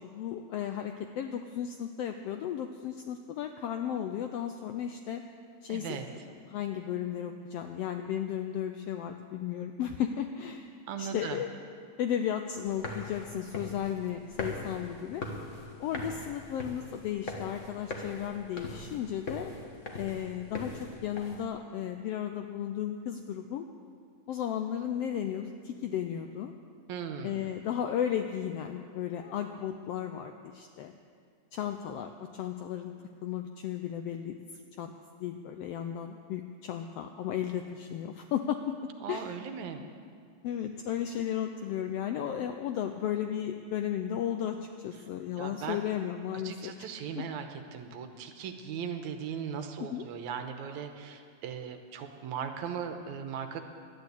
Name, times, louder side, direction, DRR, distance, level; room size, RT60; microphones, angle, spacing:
voice 1, 0.0-5.2 5.6-6.0 6.5-10.7 11.0-11.5 12.0-15.2 15.8-19.5 20.0-23.7 24.3-26.5 27.2-31.0 31.5-32.9 33.2-34.9 35.2-39.3 40.4-46.9 47.1-47.2 49.8-50.1, left 9 dB, 90° left, 6 dB, 1.4 m, -34 dB
voice 2, 5.7-6.1 10.9-11.4 26.9-27.4 39.0-39.8 45.4-45.8 46.4-53.6, right 7 dB, 80° right, 6 dB, 2.2 m, -38 dB
sound 1, 12.6-21.4, left 2 dB, 50° left, 0.8 m, -41 dB
12.5 x 10.5 x 8.1 m, 2.2 s
omnidirectional pair, 3.4 m